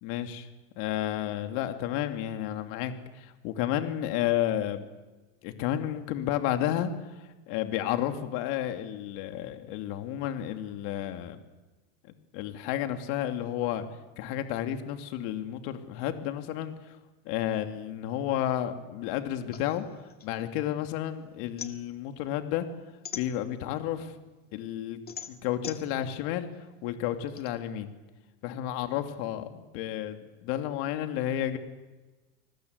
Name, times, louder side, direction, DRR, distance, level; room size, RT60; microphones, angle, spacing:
voice 1, 0.0-0.5 0.8-4.9 5.4-6.9 7.5-11.4 12.3-13.9 14.2-16.7 17.2-19.8 20.2-22.7 23.1-24.1 24.5-25.0 25.3-26.5 26.8-27.9 28.4-31.6, left 11 dB, 65° left, 7 dB, 2.8 m, -31 dB
sound 1, 19.5-21.0 21.3-23.9 24.3-27.5, left 8 dB, 30° left, 2.2 m, -43 dB
29.0 x 20.5 x 8.2 m, 1.2 s
supercardioid pair, 140°, 33 cm